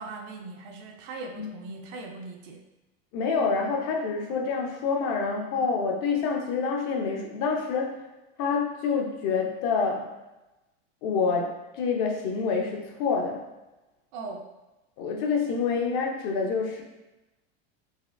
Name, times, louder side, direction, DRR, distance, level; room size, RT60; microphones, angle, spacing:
voice 1, 0.0-2.6 14.1-14.5, right 3 dB, 45° right, 3 dB, 0.4 m, -39 dB
voice 2, 3.1-8.0 8.4-10.0 11.0-13.4 15.0-16.8, left 5 dB, 50° left, 2 dB, 0.6 m, -27 dB
4.1 x 3.2 x 2.5 m, 1.0 s
supercardioid pair, 155°, 33 cm